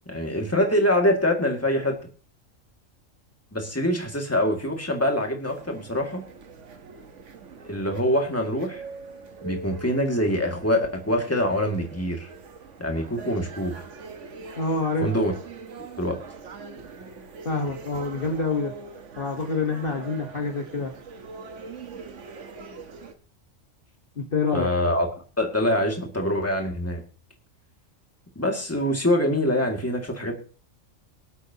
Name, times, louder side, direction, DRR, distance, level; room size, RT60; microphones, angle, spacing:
voice 1, 0.0-2.0 3.5-6.2 7.6-8.8 9.4-12.3 12.8-13.8 15.0-15.3 16.0-16.2 24.5-25.1 25.4-27.0 28.4-30.3, left 1 dB, 10° left, 2 dB, 2.0 m, -24 dB
sound 1, 5.5-23.1, right 4 dB, 65° right, 1.5 m, -43 dB
voice 2, 14.6-15.1 17.4-18.7 19.2-20.9 24.2-24.7, left 3 dB, 45° left, 2 dB, 1.5 m, -26 dB
24.5 x 8.4 x 2.8 m, 0.37 s
omnidirectional pair, 1.4 m